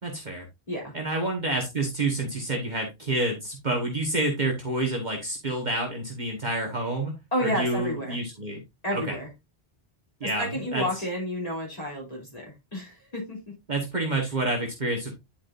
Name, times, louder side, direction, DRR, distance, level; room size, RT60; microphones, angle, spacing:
voice 1, 0.0-0.5 0.9-7.1 7.4-8.6 8.9-9.1 10.2-10.8 13.7-15.2, right 2 dB, 45° right, 1 dB, 1.6 m, -28 dB
voice 2, 7.3-8.2 8.8-9.3 10.2-13.4, equal, 35° left, -3 dB, 3.0 m, -31 dB
10.5 x 4.8 x 2.5 m, 0.21 s
omnidirectional pair, 1.1 m